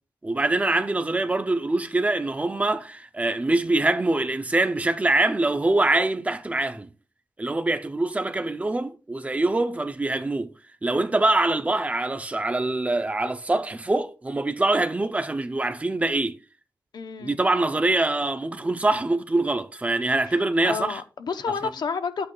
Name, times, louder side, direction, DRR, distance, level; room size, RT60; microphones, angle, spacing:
voice 1, 0.2-6.9 7.4-10.5 10.8-16.4 17.2-21.0, right 2 dB, 20° right, 0.5 m, -24 dB
voice 2, 16.9-17.4 20.3-20.4 20.6-22.3, left 5 dB, 75° left, 0.7 m, -30 dB
10.5 x 8.6 x 2.3 m
wide cardioid pair, 180°, 7 cm